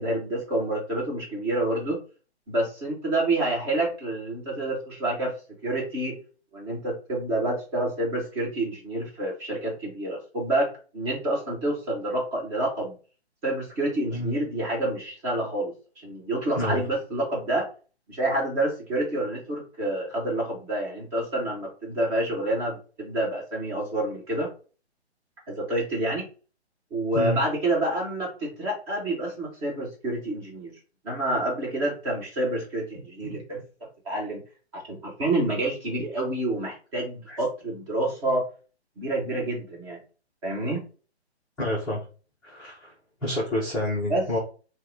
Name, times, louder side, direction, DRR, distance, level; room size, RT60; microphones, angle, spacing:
voice 1, 0.0-2.0 2.5-5.4 5.6-6.2 6.5-13.0 13.4-17.7 18.1-24.5 25.5-26.3 26.9-30.7 31.0-33.6 34.1-34.4 34.7-38.4 39.0-40.0 40.4-40.8 44.1-44.3, right 1 dB, 25° right, -3 dB, 2.1 m, -28 dB
voice 2, 41.6-42.0 42.4-42.9 43.2-44.4, left 1 dB, 5° left, -10 dB, 0.5 m, -28 dB
4.7 x 2.8 x 3.7 m, 0.35 s
hypercardioid pair, 150°, 33 cm